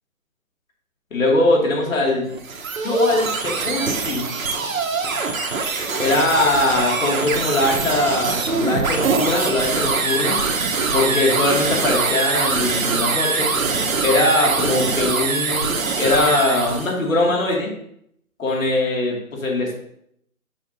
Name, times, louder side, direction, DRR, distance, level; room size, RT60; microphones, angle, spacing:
voice 1, 1.1-2.2 2.8-4.3 6.0-10.4 10.9-13.5 14.0-17.7 18.4-19.7, left 2 dB, 65° left, -1 dB, 2.4 m, -21 dB
sound 1, 2.3-16.9, right 4 dB, 70° right, 1.2 m, -23 dB
6.5 x 6.1 x 2.7 m, 0.72 s
hypercardioid pair, 170°, 43 cm